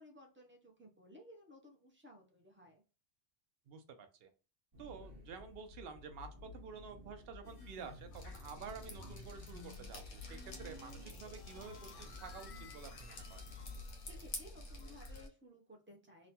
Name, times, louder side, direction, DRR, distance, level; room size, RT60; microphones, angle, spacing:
voice 1, 0.0-2.8 14.0-16.3, left 1 dB, 15° right, 1 dB, 0.4 m, -58 dB
voice 2, 3.7-4.3 4.8-13.4, right 5 dB, 65° right, 7 dB, 0.7 m, -50 dB
sound 1, 4.7-13.8, left 3 dB, 35° right, 0.8 m, -54 dB
sound 2, 7.4-14.5, left 3 dB, 60° left, 0.7 m, -57 dB
Drip, 8.1-15.3, left 2 dB, 90° left, 1.1 m, -50 dB
2.9 x 2.2 x 2.7 m, 0.34 s
omnidirectional pair, 1.2 m